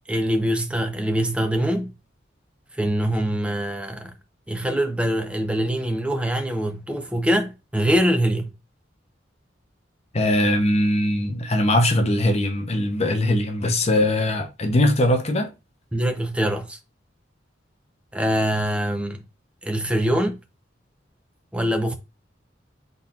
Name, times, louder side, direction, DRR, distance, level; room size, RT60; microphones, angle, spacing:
voice 1, 0.1-1.9 2.7-4.1 4.5-8.5 15.9-16.8 18.1-19.3 19.6-20.4 21.5-22.0, equal, 5° right, 0.5 m, -23 dB
voice 2, 10.1-15.5, left 1 dB, 35° left, 0.7 m, -21 dB
4.1 x 3.9 x 2.4 m
head